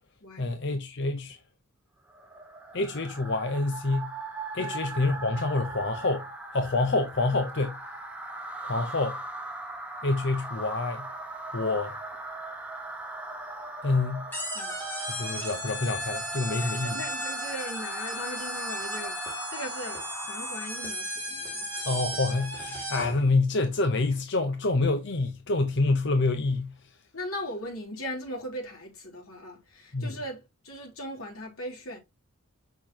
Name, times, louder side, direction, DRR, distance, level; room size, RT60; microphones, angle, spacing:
voice 1, 0.4-1.4 2.7-4.1 4.5-6.3 6.5-7.8 8.6-9.2 10.0-11.1 11.5-11.9 13.8-14.3 15.1-17.0 21.9-26.7 29.9-30.1, left 3 dB, 55° left, 0.8 m, -27 dB
sound 1, 2.1-21.0, right 2 dB, 5° right, 1.2 m, -39 dB
sound 2, 14.3-23.2, equal, 10° left, 3.1 m, -35 dB
voice 2, 16.6-21.9 27.1-32.0, equal, 90° left, 3.5 m, -39 dB
6.7 x 5.9 x 2.9 m
head